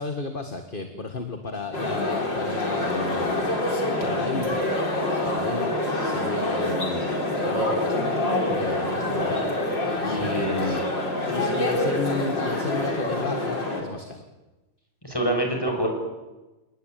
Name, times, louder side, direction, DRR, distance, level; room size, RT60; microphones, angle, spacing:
voice 1, 0.0-3.5 4.0-4.7 5.2-7.2 7.4-9.5 10.0-10.8 11.3-14.2, left 3 dB, 25° left, 6 dB, 1.8 m, -33 dB
sound 1, 1.7-13.8, left 1 dB, 55° left, 5.3 m, -26 dB
voice 2, 10.1-10.8 15.0-15.9, right 1 dB, 10° left, 3 dB, 6.5 m, -27 dB
29.5 x 19.5 x 9.3 m, 1.1 s
omnidirectional pair, 2.4 m